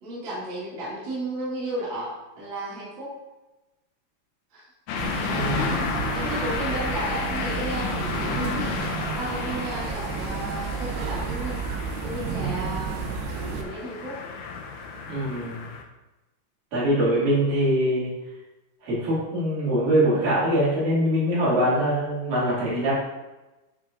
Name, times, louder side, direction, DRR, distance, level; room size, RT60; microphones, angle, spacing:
voice 1, 0.0-3.1 4.5-4.6 5.3-11.6 12.0-13.0 13.5-14.2, right 1 dB, 40° right, -8 dB, 2.3 m, -34 dB
sound 1, 4.9-15.8, left 5 dB, 85° left, 1.8 m, -32 dB
sound 2, 5.0-13.6, right 6 dB, 85° right, 2.6 m, -31 dB
voice 2, 5.3-5.7 15.1-15.7 16.7-18.1 18.8-22.9, right 1 dB, 60° right, -9 dB, 3.8 m, -23 dB
9.7 x 4.6 x 2.5 m, 1.1 s
omnidirectional pair, 4.5 m